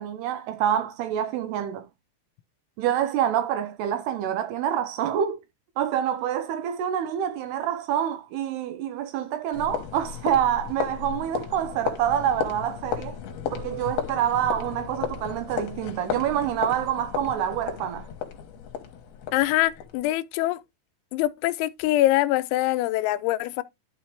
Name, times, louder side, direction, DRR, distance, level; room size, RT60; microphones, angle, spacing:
voice 1, 0.0-1.9 2.8-5.4 5.8-13.2 13.5-18.1, right 10 dB, 85° right, 2.5 m, -27 dB
sound 1, 9.5-20.1, left 8 dB, 70° left, 2.6 m, -34 dB
voice 2, 19.3-20.6 21.1-23.6, left 16 dB, 90° left, 3.0 m, -24 dB
11.5 x 4.7 x 3.2 m
omnidirectional pair, 5.3 m